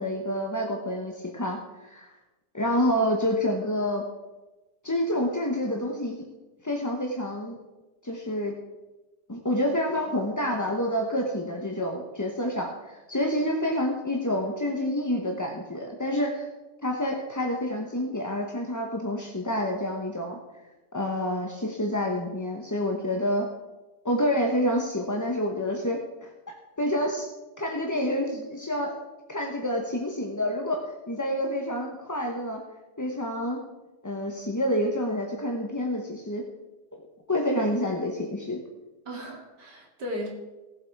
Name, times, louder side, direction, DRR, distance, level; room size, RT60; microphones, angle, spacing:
voice 1, 0.0-2.1 2.5-4.0 4.8-6.2 6.6-7.6 8.0-8.5 9.3-16.5 16.8-20.4 20.9-23.5 24.0-26.3 26.8-27.3 27.6-28.9 29.3-32.6 33.0-33.6 34.0-36.4 37.3-38.6, left 1 dB, 15° left, 1 dB, 0.6 m, -28 dB
voice 2, 39.0-40.3, equal, 80° right, 0 dB, 3.0 m, -36 dB
17.5 x 7.7 x 4.7 m, 1.1 s
omnidirectional pair, 1.8 m